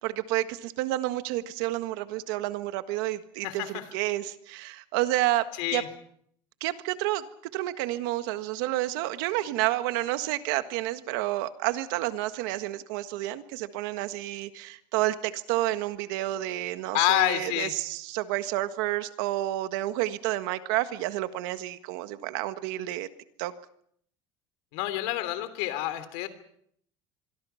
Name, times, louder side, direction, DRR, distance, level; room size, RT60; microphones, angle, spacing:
voice 1, 0.0-5.4 5.7-5.8 6.6-7.2 7.5-23.1 23.4-23.5, right 16 dB, 75° right, 11 dB, 1.6 m, -30 dB
voice 2, 3.4-3.8 5.6-5.9 16.9-17.7 24.7-26.3, left 15 dB, 65° left, 12 dB, 3.0 m, -28 dB
25.5 x 23.5 x 5.8 m, 0.67 s
cardioid pair, 175°, 12 cm